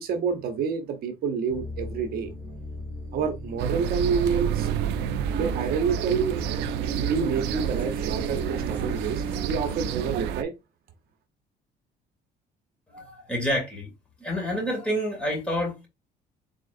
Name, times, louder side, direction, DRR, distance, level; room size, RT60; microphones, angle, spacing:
voice 1, 0.0-2.3 3.1-4.7 5.3-6.4 6.9-10.5, right 6 dB, 60° right, 0.8 m, -28 dB
sound 1, 1.5-9.9, equal, 10° right, 2.2 m, -38 dB
sound 2, 3.6-10.4, right 9 dB, 85° right, 0.4 m, -29 dB
voice 2, 12.9-13.9 14.2-15.9, equal, 5° left, 2.4 m, -28 dB
4.2 x 3.7 x 2.5 m
cardioid pair, 110°, 17 cm